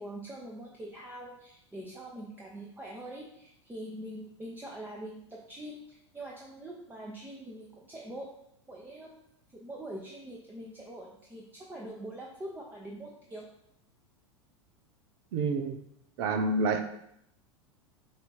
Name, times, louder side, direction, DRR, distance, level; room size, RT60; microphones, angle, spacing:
voice 1, 0.0-8.3 8.7-9.2 9.5-13.5, right 1 dB, 15° right, -3 dB, 1.0 m, -43 dB
voice 2, 15.3-15.8 16.2-16.8, right 3 dB, 50° right, 7 dB, 0.8 m, -28 dB
7.6 x 2.9 x 4.6 m, 0.77 s
figure-of-eight pair, 85°, 16 cm